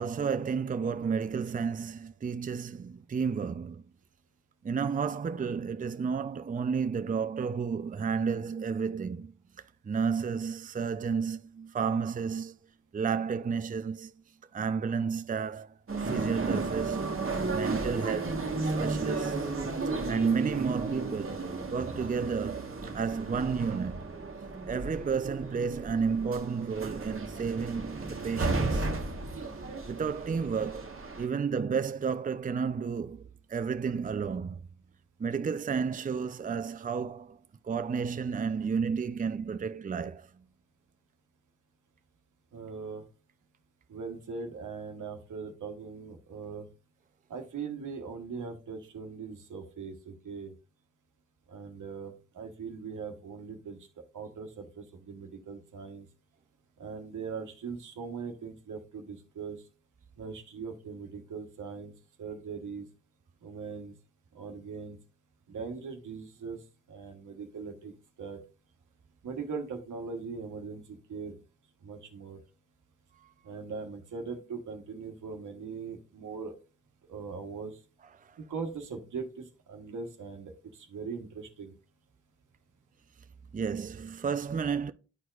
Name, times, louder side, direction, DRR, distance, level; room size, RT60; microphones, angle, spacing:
voice 1, 0.0-3.8 4.6-9.3 9.8-12.5 12.9-14.1 14.5-15.8 16.0-17.2 17.5-18.4 18.8-19.4 20.1-21.4 21.7-24.3 24.7-28.9 29.9-34.6 35.2-37.4 37.6-40.3 78.2-78.4 83.5-84.9, right 6 dB, 30° right, 0.5 m, -32 dB
sound 1, 15.9-31.3, right 3 dB, 45° right, 1.3 m, -34 dB
voice 2, 42.5-43.0 43.9-46.7 47.3-50.5 51.5-53.8 54.1-56.1 56.8-59.6 60.2-61.9 62.2-62.8 63.4-63.9 64.3-65.0 65.5-66.6 66.9-67.9 68.2-68.4 69.2-71.4 71.8-72.4 73.4-76.5 77.1-77.8 78.4-81.7, right 5 dB, 85° right, 1.1 m, -40 dB
11.0 x 4.4 x 2.4 m
cardioid pair, 45°, 30 cm